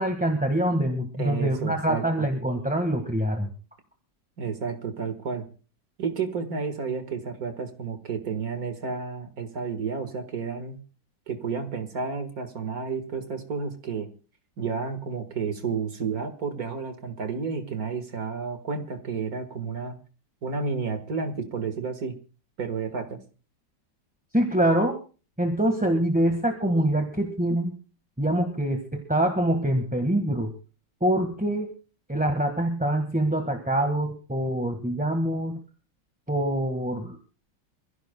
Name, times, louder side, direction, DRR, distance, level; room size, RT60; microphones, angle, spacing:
voice 1, 0.0-3.5 24.3-25.0 25.4-27.7 28.2-30.5 31.0-31.7 32.1-35.6 36.3-37.2, right 1 dB, 5° right, 4 dB, 1.3 m, -25 dB
voice 2, 1.2-2.3 4.4-5.4 6.0-10.8 11.3-14.1 14.6-20.0 20.4-22.2 22.6-23.2, right 5 dB, 55° right, 8 dB, 2.0 m, -31 dB
26.5 x 15.5 x 2.2 m, 0.36 s
omnidirectional pair, 1.9 m